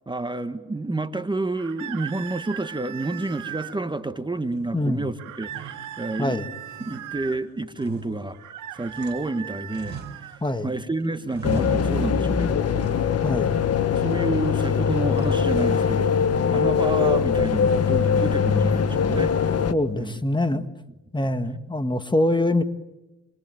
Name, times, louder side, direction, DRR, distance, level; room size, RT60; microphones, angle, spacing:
voice 1, 0.1-8.4 8.7-12.9 14.0-19.3 19.9-20.1 20.5-20.6, right 2 dB, 15° right, 9 dB, 1.5 m, -30 dB
sound 1, 1.6-3.8 5.2-7.4 8.3-10.4, right 11 dB, 85° right, 2.1 m, -38 dB
sound 2, 4.5-5.1 5.4-6.4 6.6-9.4 9.7-10.7 11.0-12.4 12.8-13.5 13.9-14.6 14.9-16.0 16.3-17.0 17.6-18.0 19.4-19.9, right 5 dB, 35° right, 5.3 m, -44 dB
voice 2, 4.7-5.1 6.2-6.5 10.4-10.7 13.2-13.5 19.7-20.7 21.1-22.6, left 1 dB, 15° left, 9 dB, 1.8 m, -24 dB
sound 3, 11.4-19.7, left 6 dB, 55° left, 1.7 m, -22 dB
28.0 x 22.0 x 9.1 m, 1.0 s
cardioid pair, 90°, 30 cm